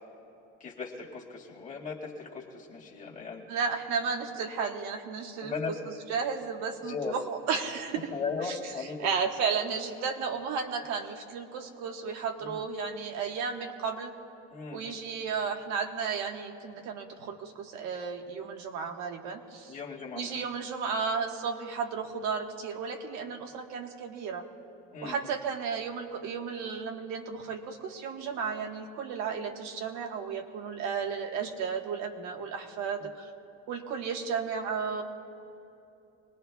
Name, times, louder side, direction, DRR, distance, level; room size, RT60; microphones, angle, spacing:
voice 1, 0.6-3.5 4.2-4.3 5.4-5.9 6.8-7.2 7.9-9.1 12.4-12.6 14.5-15.0 19.7-20.5 24.9-25.4, left 5 dB, 25° left, -3 dB, 1.9 m, -38 dB
voice 2, 3.5-5.5 6.1-8.1 8.5-8.6 9.0-14.1 14.7-19.8 20.1-24.5 25.0-33.3 33.7-35.0, right 6 dB, 60° right, 4 dB, 1.4 m, -33 dB
25.5 x 20.0 x 2.3 m, 2.8 s
cardioid pair, 165°, 31 cm